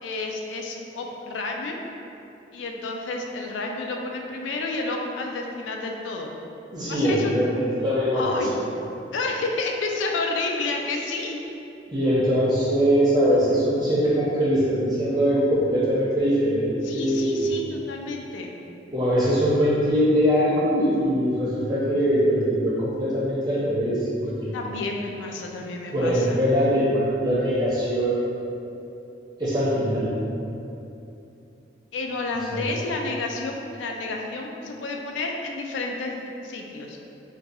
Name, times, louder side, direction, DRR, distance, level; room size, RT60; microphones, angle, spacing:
voice 1, 0.0-1.8 2.5-6.3 6.9-7.3 8.1-8.5 9.1-11.4 16.8-18.5 24.5-26.4 31.9-36.1 36.4-37.0, left 3 dB, 85° left, 1 dB, 0.4 m, -30 dB
voice 2, 6.7-8.5 11.9-17.3 18.9-24.5 25.9-28.5 29.4-30.1 32.5-32.7, equal, 20° right, -9 dB, 0.5 m, -22 dB
2.5 x 2.3 x 4.0 m, 2.8 s
head